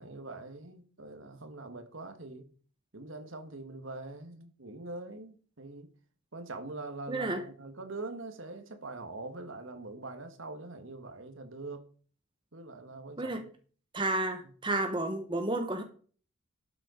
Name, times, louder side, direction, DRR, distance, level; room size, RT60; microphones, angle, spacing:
voice 1, 0.0-2.5 2.9-5.9 6.3-11.8 12.5-13.4, right 2 dB, 65° right, 1.6 m, -43 dB
voice 2, 7.1-7.4 13.2-13.4 13.9-15.8, right 2 dB, 25° right, 1.2 m, -31 dB
12.0 x 6.7 x 5.1 m
head